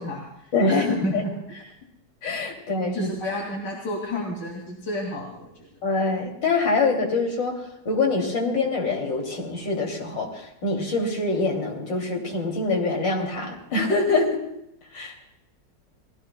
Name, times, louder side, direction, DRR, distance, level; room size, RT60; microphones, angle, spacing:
voice 1, 0.0-1.6 2.9-5.7, left 1 dB, 70° left, -2 dB, 3.1 m, -31 dB
voice 2, 0.5-1.2 2.2-3.1 5.8-7.5 7.9-14.4 14.9-15.1, left 3 dB, 85° left, 1 dB, 3.5 m, -24 dB
29.5 x 19.0 x 2.2 m, 0.82 s
omnidirectional pair, 1.9 m